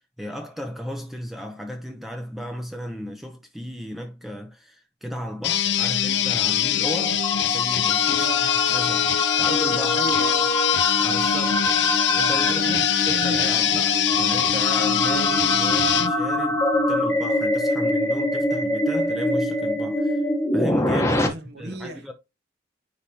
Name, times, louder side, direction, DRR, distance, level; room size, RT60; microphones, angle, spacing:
voice 1, 0.2-9.1 9.4-10.1 11.0-11.7 12.2-20.2 20.5-22.1, equal, ahead, 0.6 m, -34 dB
sound 1, 5.4-16.1, left 10 dB, 70° left, 0.6 m, -23 dB
sound 2, 6.2-21.3, left 1 dB, 15° left, 1.0 m, -24 dB
voice 2, 9.9-10.5 12.6-12.9 21.1-22.1, right 2 dB, 60° right, 1.3 m, -35 dB
9.6 x 3.5 x 2.8 m
head